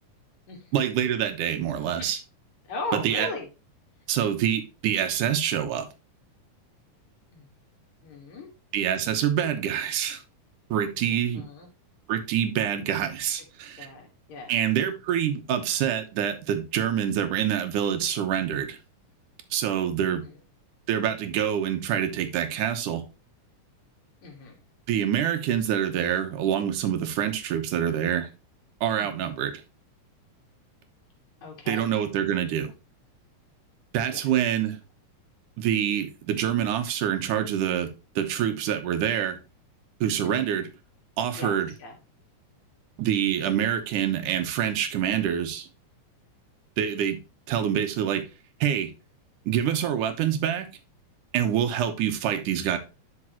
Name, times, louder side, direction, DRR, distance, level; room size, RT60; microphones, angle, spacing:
voice 1, 0.7-2.2 2.9-3.3 4.1-5.9 8.7-10.2 10.7-11.4 12.1-13.9 14.5-18.8 19.5-20.2 20.9-23.0 24.9-28.3 28.8-29.6 31.7-32.7 33.9-34.8 35.6-39.4 40.0-40.7 41.2-41.7 43.0-45.7 46.8-47.2 47.5-48.2 48.6-48.9 49.5-50.7 51.3-52.8, right 9 dB, 80° right, 2.5 m, -26 dB
voice 2, 2.7-3.5 7.3-7.5 8.0-8.5 11.0-11.7 13.8-14.5 20.0-20.1 24.2-24.6 28.9-29.2 31.4-31.9 34.1-34.3 40.2-40.5 41.4-42.0, left 2 dB, 60° left, 3.1 m, -38 dB
11.0 x 5.3 x 3.0 m
omnidirectional pair, 3.7 m